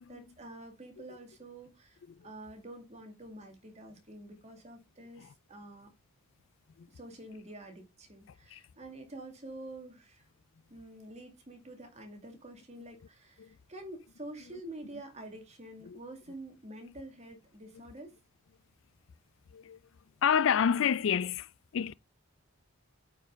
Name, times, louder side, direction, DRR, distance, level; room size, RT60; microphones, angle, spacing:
voice 1, 0.0-5.9 6.9-10.3 10.7-18.2, right 1 dB, 30° right, 2.2 m, -48 dB
voice 2, 20.2-21.9, left 7 dB, 55° left, 0.3 m, -29 dB
8.8 x 5.2 x 3.8 m
head